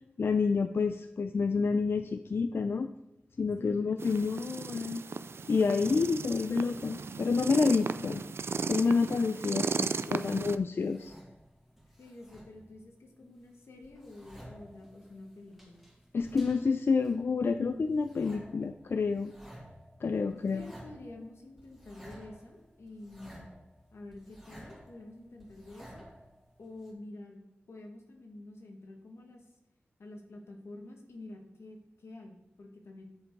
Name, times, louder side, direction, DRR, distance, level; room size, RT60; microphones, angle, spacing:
voice 1, 0.2-2.9 3.4-5.0 5.5-8.2 8.7-11.1 16.1-19.3 20.0-20.6, left 4 dB, 65° left, 8 dB, 0.4 m, -28 dB
voice 2, 3.6-4.0 12.0-15.9 20.3-23.5 23.9-26.1 26.6-27.4 27.7-29.5 30.0-33.0, left 2 dB, 85° left, 2 dB, 1.4 m, -48 dB
sound 1, 4.0-10.6, right 5 dB, 70° right, 0.3 m, -36 dB
sound 2, 10.8-12.8 13.1-26.9, equal, 5° right, 2.0 m, -54 dB
7.5 x 7.2 x 4.5 m, 0.86 s
wide cardioid pair, 100°, 4 cm